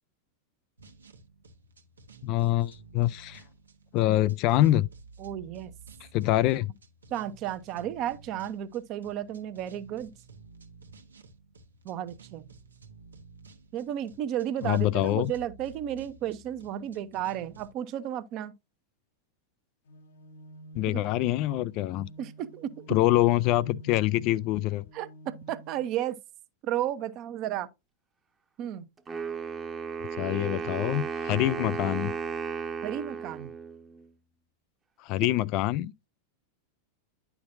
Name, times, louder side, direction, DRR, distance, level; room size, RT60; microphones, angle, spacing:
sound 1, 0.8-17.7, right 4 dB, 75° right, 1.1 m, -52 dB
voice 1, 2.2-3.4 3.9-4.9 6.1-6.7 14.6-15.3 20.8-22.1 22.9-24.8 30.2-32.1 35.0-36.1, left 15 dB, 40° left, 0.3 m, -25 dB
voice 2, 5.2-5.7 7.1-10.1 11.8-12.5 13.7-18.5 20.9-21.0 22.2-22.8 24.9-26.2 26.6-27.7 28.6-28.9 32.8-33.5 35.2-35.4, right 11 dB, 40° right, 0.8 m, -33 dB
sound 2, 19.9-25.8, right 2 dB, 60° left, 1.0 m, -48 dB
Wind instrument woodwind instrument, 29.1-34.1, right 6 dB, 20° right, 1.0 m, -34 dB
10.5 x 5.9 x 2.6 m
figure-of-eight pair, 90°, 0 cm